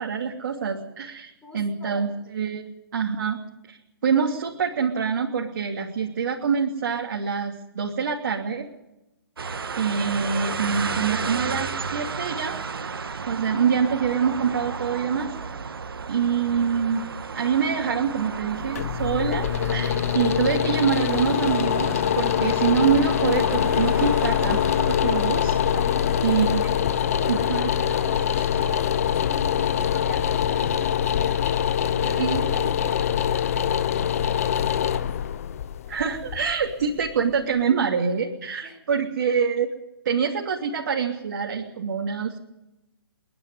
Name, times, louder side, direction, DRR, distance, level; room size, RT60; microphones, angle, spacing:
voice 1, 0.0-3.4 3.7-3.8 4.0-8.7 9.8-13.0 13.3-15.3 16.1-17.0 17.3-24.6 24.9-25.6 26.2-26.7 27.3-27.7 32.2-32.6 35.9-39.7 40.0-42.4, right 6 dB, 45° right, 0 dB, 3.0 m, -25 dB
voice 2, 1.4-2.1 25.7-31.5 31.9-35.1 35.8-35.9 38.6-38.8, left 1 dB, 5° left, -1 dB, 6.0 m, -42 dB
sound 1, 9.4-28.8, right 5 dB, 65° right, 1.6 m, -34 dB
sound 2, 18.4-37.3, left 9 dB, 35° left, 0.7 m, -24 dB
30.0 x 10.5 x 9.8 m, 0.94 s
hypercardioid pair, 155°, 13 cm